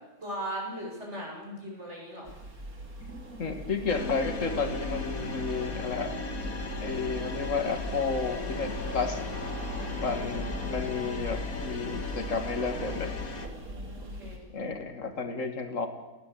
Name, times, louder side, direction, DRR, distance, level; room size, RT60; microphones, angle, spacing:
voice 1, 0.2-2.3 9.7-10.4 13.7-14.4, equal, 50° right, -1 dB, 8.0 m, -39 dB
sound 1, 2.3-14.4, right 1 dB, 80° right, 3.8 m, -41 dB
voice 2, 3.4-6.1 6.8-9.2 10.0-13.1 14.5-15.9, left 4 dB, 60° left, 7 dB, 2.6 m, -32 dB
sound 2, 3.9-13.5, left 4 dB, 75° left, 2.6 m, -36 dB
28.0 x 17.5 x 8.7 m, 1.1 s
omnidirectional pair, 1.5 m